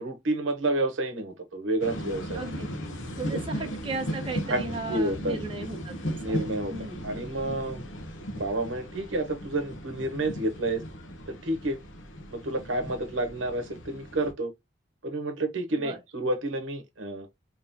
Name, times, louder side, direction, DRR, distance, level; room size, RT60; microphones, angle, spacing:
voice 1, 0.0-2.4 4.5-4.6 4.9-5.4 6.2-6.7 7.0-7.8 8.3-10.8 11.3-11.8 12.3-14.5 15.0-17.3, right 2 dB, 85° right, 0.8 m, -29 dB
sound 1, 1.8-14.3, equal, 80° left, 0.9 m, -37 dB
voice 2, 2.3-2.7 3.2-7.1 15.8-16.0, right 2 dB, 25° right, 0.7 m, -36 dB
3.6 x 3.0 x 2.7 m
head